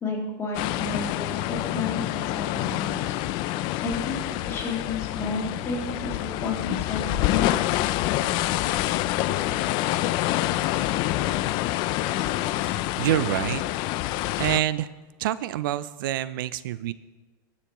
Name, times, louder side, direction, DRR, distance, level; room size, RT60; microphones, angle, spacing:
voice 1, 0.0-3.0 3.8-4.2 4.5-7.5, left 3 dB, 25° left, -1 dB, 2.2 m, -32 dB
sound 1, 0.5-14.6, left 15 dB, 45° left, 0.4 m, -27 dB
voice 2, 13.0-13.6 14.4-14.9 15.2-16.9, right 13 dB, 75° right, 17 dB, 0.5 m, -26 dB
19.0 x 6.9 x 3.0 m, 1.3 s
supercardioid pair, 140°, 11 cm